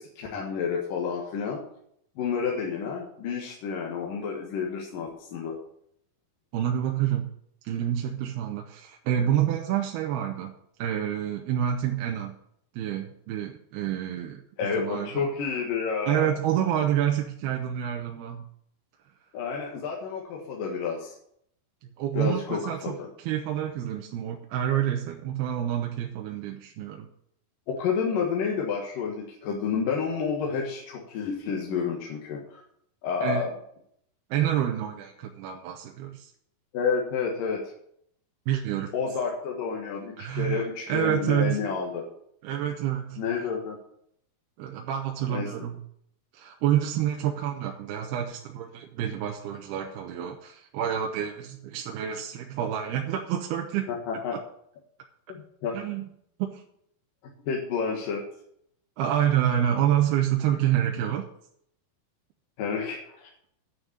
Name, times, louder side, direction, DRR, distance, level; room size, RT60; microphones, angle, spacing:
voice 1, 0.0-1.6 2.2-5.5 14.6-16.3 19.3-21.1 22.1-23.1 27.7-32.6 33.0-33.5 36.7-37.6 38.9-42.0 43.2-43.8 45.3-45.5 54.1-54.3 55.3-55.8 57.5-58.2 62.6-63.3, left 6 dB, 65° left, -1 dB, 3.0 m, -30 dB
voice 2, 6.5-7.3 7.6-12.4 12.7-15.2 16.1-18.4 21.8-27.1 33.2-33.5 34.3-36.3 38.5-38.9 40.2-41.7 42.4-43.5 44.6-45.8 46.3-53.9 55.7-56.1 56.5-56.6 59.0-61.3, right 10 dB, 85° right, 3 dB, 2.9 m, -28 dB
9.4 x 6.4 x 8.6 m, 0.69 s
omnidirectional pair, 4.5 m